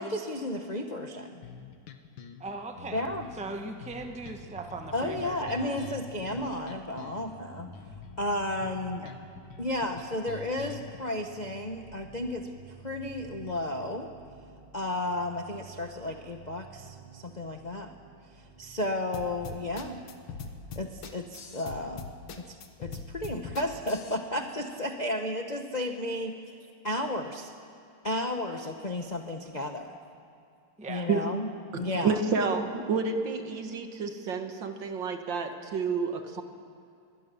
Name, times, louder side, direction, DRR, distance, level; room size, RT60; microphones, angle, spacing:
voice 1, 0.0-1.4 2.9-3.3 4.9-7.7 8.2-9.0 9.6-12.5 12.8-14.1 14.7-17.9 18.6-20.0 20.7-22.1 22.4-26.4 26.8-27.5 28.0-29.9 30.9-31.5 31.8-32.2, left 1 dB, 35° left, 4 dB, 0.7 m, -33 dB
sound 1, 1.4-11.0, left 8 dB, 60° left, 1.8 m, -46 dB
voice 2, 2.4-3.0 3.3-5.8 9.0-9.1 30.8-31.1, right 3 dB, 5° right, 4 dB, 1.0 m, -39 dB
sound 2, 3.9-19.9, right 6 dB, 85° right, 4.0 m, -52 dB
sound 3, 19.1-24.2, left 5 dB, 85° left, 2.2 m, -41 dB
voice 3, 31.7-36.4, right 5 dB, 60° right, 6 dB, 2.1 m, -29 dB
26.5 x 21.5 x 6.9 m, 2.4 s
omnidirectional pair, 2.4 m